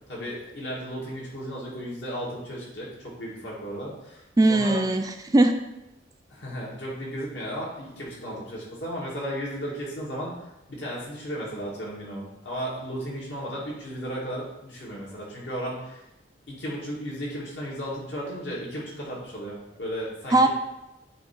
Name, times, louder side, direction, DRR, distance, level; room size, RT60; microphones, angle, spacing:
voice 1, 0.1-4.2 4.5-4.8 6.3-10.3 10.7-16.0 16.5-20.5, equal, 75° left, -5 dB, 2.3 m, -34 dB
voice 2, 4.4-5.6 20.3-20.5, right 2 dB, 20° right, 6 dB, 0.3 m, -19 dB
8.9 x 3.1 x 4.5 m, 0.93 s
head